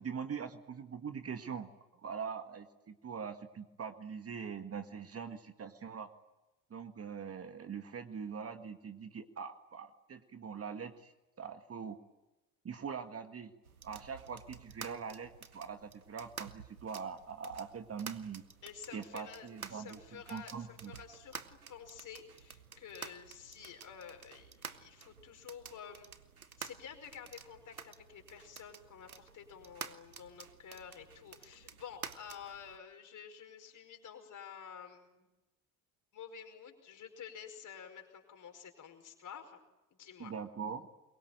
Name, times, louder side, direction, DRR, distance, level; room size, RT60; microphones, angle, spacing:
voice 1, 0.0-6.1 6.7-12.0 12.6-13.5 13.8-18.4 18.9-20.9 40.2-40.9, right 6 dB, 35° right, 8 dB, 1.9 m, -43 dB
sound 1, 13.7-32.8, right 6 dB, 90° right, 0.8 m, -51 dB
voice 2, 18.6-26.1 26.4-35.3 36.1-39.6 39.9-40.3, left 7 dB, 45° left, 5 dB, 5.2 m, -50 dB
26.0 x 22.5 x 9.1 m, 1.0 s
figure-of-eight pair, 50°, 42 cm